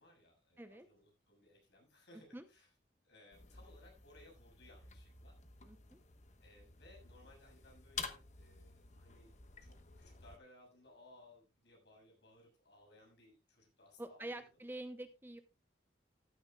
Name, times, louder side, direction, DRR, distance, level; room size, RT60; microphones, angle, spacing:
voice 1, 0.0-2.7 3.0-5.4 6.4-14.5, left 1 dB, 65° left, 1 dB, 6.9 m, -63 dB
sound 1, 3.3-10.4, left 5 dB, 40° left, 1.1 m, -51 dB
voice 2, 5.6-6.0 14.0-15.4, right 1 dB, 10° right, 8 dB, 0.7 m, -47 dB
14.5 x 12.5 x 2.3 m, 0.26 s
head